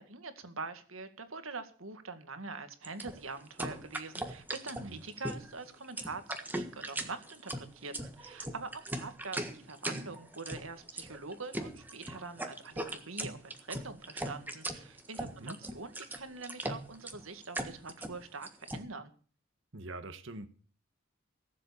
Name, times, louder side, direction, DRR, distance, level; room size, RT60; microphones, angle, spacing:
voice 1, 0.0-19.1, right 3 dB, 85° right, 2.0 m, -44 dB
sound 1, 2.8-18.8, right 1 dB, 10° right, 1.5 m, -39 dB
voice 2, 15.2-15.6 19.7-20.5, right 2 dB, 65° right, 1.5 m, -44 dB
18.0 x 7.7 x 7.1 m
head